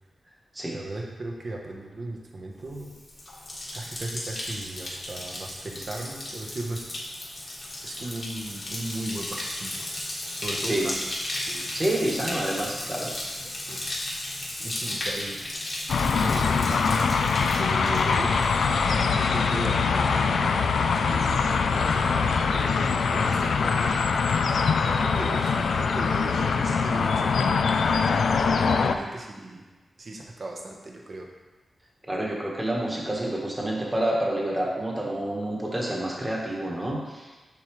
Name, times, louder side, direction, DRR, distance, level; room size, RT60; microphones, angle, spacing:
voice 1, 0.7-2.9 3.7-6.8 7.4-7.5 7.8-9.7 10.4-11.1 11.5-11.7 12.8-13.3 13.7-13.9 14.6-15.7 16.1-18.4 18.8-20.4 20.9-24.0 24.8-29.7 30.0-31.3, right 2 dB, 45° right, 0 dB, 1.0 m, -37 dB
Bathtub (filling or washing), 2.7-18.8 19.1-19.6, left 1 dB, 40° left, 1.5 m, -35 dB
voice 2, 11.7-13.1 32.1-37.4, right 1 dB, 15° right, -3 dB, 1.4 m, -28 dB
sound 1, 15.9-29.0, left 5 dB, 90° left, 0.4 m, -23 dB
7.0 x 6.5 x 3.2 m, 1.2 s
wide cardioid pair, 135°, 0 cm